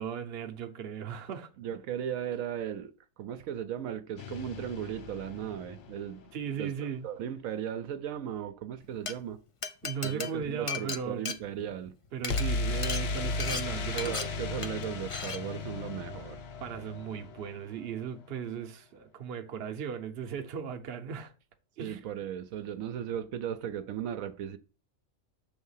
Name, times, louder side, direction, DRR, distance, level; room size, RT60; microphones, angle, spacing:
voice 1, 0.0-1.5 6.3-7.1 9.8-11.3 12.1-14.1 16.6-21.3 21.8-22.0, right 7 dB, 55° right, 0.9 m, -37 dB
voice 2, 1.6-6.2 6.6-9.4 10.0-11.9 13.9-16.4 21.8-24.6, right 9 dB, 80° right, 1.0 m, -36 dB
sound 1, 4.2-6.2 12.3-18.1, left 3 dB, 60° left, 0.8 m, -35 dB
Glass, 8.8-9.1 9.6-11.9 12.2-12.4 12.8-13.0 13.4-13.6 14.0-14.2 14.6-14.8 15.1-15.4, left 5 dB, 40° left, 0.4 m, -35 dB
6.5 x 3.6 x 5.6 m
omnidirectional pair, 1.4 m